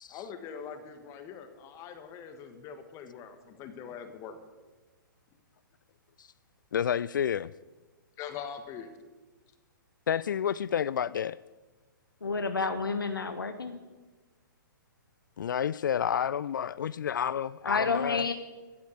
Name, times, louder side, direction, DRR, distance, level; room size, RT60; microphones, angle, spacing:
voice 1, 0.1-4.4 8.2-8.9, left 7 dB, 30° left, 1.4 m, -43 dB
voice 2, 6.7-7.5 10.1-11.4 15.4-18.2, left 8 dB, 65° left, 0.4 m, -30 dB
voice 3, 12.2-13.8 17.6-18.3, left 4 dB, 85° left, 1.1 m, -30 dB
14.5 x 8.1 x 8.0 m
figure-of-eight pair, 120°, 11 cm